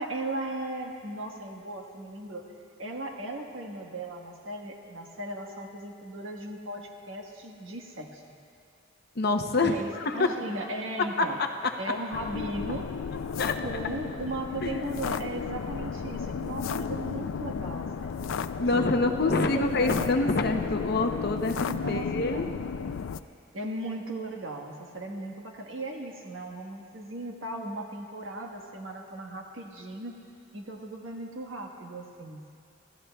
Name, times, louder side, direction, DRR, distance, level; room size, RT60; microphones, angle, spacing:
voice 1, 0.0-2.5 2.8-8.2 9.6-11.4 11.8-12.9 13.6-18.9 19.2-20.1 21.7-22.5 23.5-30.1 30.5-32.5, right 1 dB, 75° right, 1 dB, 1.4 m, -37 dB
voice 2, 9.2-9.8 10.1-10.3 11.2-11.3 13.4-13.6 14.6-15.2 18.6-22.4, left 3 dB, 50° left, 5 dB, 0.7 m, -26 dB
sound 1, 12.1-23.2, left 6 dB, 80° left, 0.4 m, -34 dB
25.0 x 15.5 x 2.3 m, 2.4 s
head